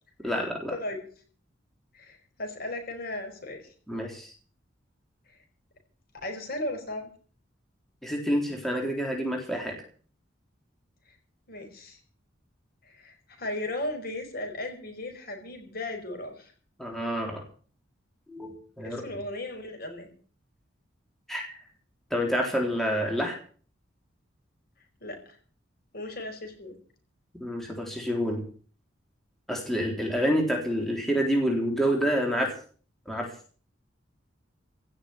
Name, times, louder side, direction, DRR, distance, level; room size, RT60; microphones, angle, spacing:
voice 1, 0.2-0.7 3.9-4.3 8.0-9.7 16.8-17.4 18.3-19.0 21.3-21.4 22.1-23.4 27.4-28.4 29.5-32.5 33.1-33.3, equal, ahead, 0 dB, 3.7 m, -28 dB
voice 2, 1.9-3.7 5.3-5.4 6.2-7.1 11.5-12.0 12.8-16.5 18.8-20.1 25.0-25.4 25.9-26.8, left 1 dB, 50° left, 4 dB, 5.1 m, -36 dB
17.0 x 7.3 x 9.8 m, 0.43 s
head